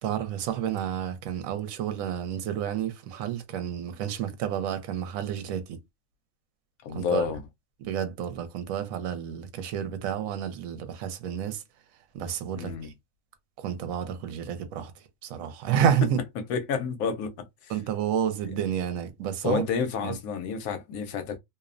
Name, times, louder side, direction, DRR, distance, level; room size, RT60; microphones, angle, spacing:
voice 1, 0.0-5.8 6.9-7.3 7.8-11.6 12.1-12.9 13.6-16.2 17.7-19.6 20.0-20.2, right 9 dB, 75° right, 1.0 m, -30 dB
voice 2, 6.8-7.4 12.6-12.9 16.5-17.7 19.4-21.4, left 6 dB, 85° left, 1.1 m, -30 dB
2.7 x 2.0 x 2.4 m
omnidirectional pair, 1.4 m